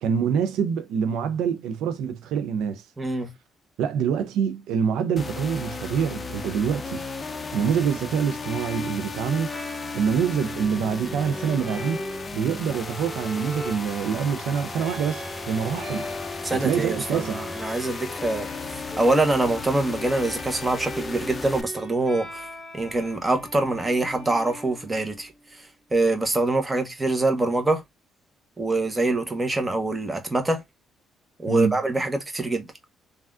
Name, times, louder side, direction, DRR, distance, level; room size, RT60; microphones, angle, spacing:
voice 1, 0.0-2.8 3.8-7.0 7.5-9.5 9.9-12.0 12.3-16.1 16.5-17.5 31.5-31.8, right 7 dB, 85° right, 0.4 m, -25 dB
voice 2, 3.0-3.3 16.4-18.5 19.0-22.5 22.7-25.6 25.9-27.8 28.6-30.6 31.4-32.7, right 2 dB, 20° right, 0.8 m, -24 dB
A Sick Piano, 5.2-21.6, left 4 dB, 30° left, 0.4 m, -35 dB
Bowed string instrument, 8.4-25.3, equal, ahead, 1.6 m, -40 dB
3.3 x 2.3 x 2.3 m
cardioid pair, 90°, 0 cm